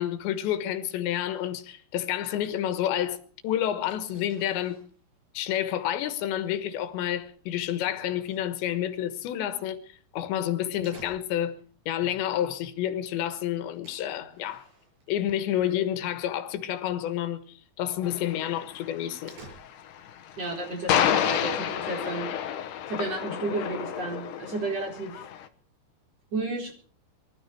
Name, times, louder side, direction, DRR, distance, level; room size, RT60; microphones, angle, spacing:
voice 1, 0.0-3.2 3.4-4.8 5.4-9.8 10.1-11.6 11.9-14.7 15.1-19.4, left 11 dB, 90° left, 3.6 m, -29 dB
sound 1, 3.8-15.7 16.0-16.5 16.8-17.0 17.5-17.6 18.0-18.1 18.4-20.1, right 3 dB, 75° right, 9.3 m, -54 dB
sound 2, 18.0-25.5, left 9 dB, 65° left, 2.2 m, -30 dB
voice 2, 20.4-22.3 22.9-25.2 26.3-26.7, right 2 dB, 35° right, 5.3 m, -32 dB
23.0 x 13.0 x 4.6 m
omnidirectional pair, 4.9 m